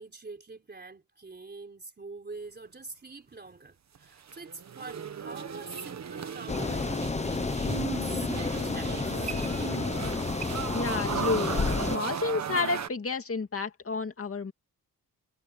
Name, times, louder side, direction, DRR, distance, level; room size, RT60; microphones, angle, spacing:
voice 1, 0.0-7.5 8.0-9.4, right 3 dB, 25° right, 3.7 m, -45 dB
sound 1, 4.0-12.9, right 7 dB, 40° right, 1.1 m, -36 dB
sound 2, 6.5-12.0, left 4 dB, 15° left, 0.7 m, -30 dB
voice 2, 10.7-11.6 11.9-14.5, left 4 dB, 35° left, 2.4 m, -30 dB
wide cardioid pair, 155°, 40 cm